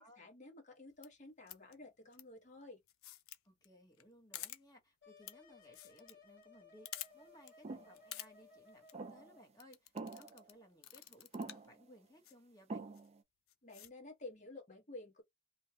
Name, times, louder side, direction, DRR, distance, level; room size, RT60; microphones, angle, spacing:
voice 1, 0.0-2.8 13.6-15.2, left 2 dB, 40° left, 1.4 m, -52 dB
sound 1, 0.9-1.1 1.5-1.7 2.1-2.2 2.9-3.4 3.6-3.7 4.0-4.1 4.3-4.6 5.2-5.3 5.6-6.1 6.4-6.5 6.8-7.1 7.5-7.6 7.9-8.3 8.7-8.9 9.6-10.5 10.8-11.7 12.2-12.3 12.9-13.1 13.5-13.9, left 13 dB, 80° left, 0.5 m, -48 dB
voice 2, 3.4-12.9, equal, 20° left, 1.1 m, -62 dB
sound 2, 5.0-9.5, left 3 dB, 60° left, 1.4 m, -61 dB
sound 3, 7.6-7.9 8.9-9.4 10.0-10.5 11.3-11.8 12.7-13.2, right 3 dB, 30° right, 0.4 m, -45 dB
3.2 x 2.2 x 2.8 m
head